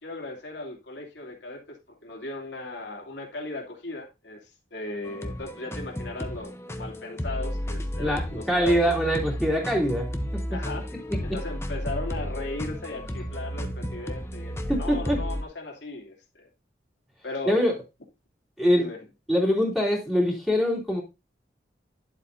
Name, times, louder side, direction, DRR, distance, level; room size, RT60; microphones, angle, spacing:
voice 1, 0.0-8.9 10.5-10.9 11.2-16.5 17.2-17.6 18.7-19.0, left 2 dB, 80° left, 2.8 m, -37 dB
sound 1, 5.0-15.4, equal, 15° left, 0.8 m, -33 dB
voice 2, 8.0-10.4 11.1-11.2 14.7-15.2 17.5-17.7 18.6-18.9 19.3-21.0, equal, ahead, 2.9 m, -24 dB
11.0 x 7.6 x 2.7 m
head